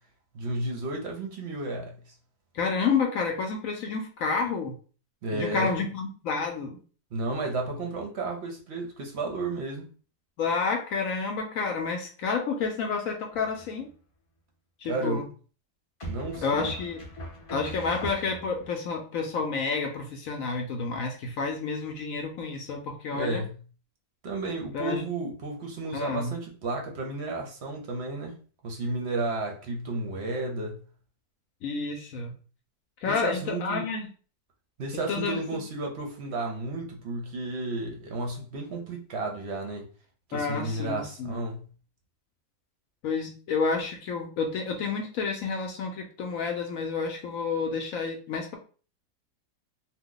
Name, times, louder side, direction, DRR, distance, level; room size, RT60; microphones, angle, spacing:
voice 1, 0.3-2.1 5.2-5.7 7.1-9.9 14.9-15.3 16.1-16.7 23.1-23.5 24.2-28.3 28.6-30.8 33.1-33.8 34.8-39.9 40.3-41.6, right 2 dB, 60° right, 0.7 m, -32 dB
voice 2, 2.5-4.7 5.3-6.8 10.4-13.9 14.8-15.3 16.4-17.0 17.5-23.4 24.7-25.1 25.9-26.3 31.6-32.3 33.0-34.1 35.1-35.6 40.3-41.4 43.0-48.6, left 4 dB, 70° left, 0.9 m, -30 dB
sound 1, 13.3-13.9 16.0-18.7, right 1 dB, 35° left, 0.6 m, -40 dB
2.9 x 2.1 x 3.7 m
omnidirectional pair, 1.7 m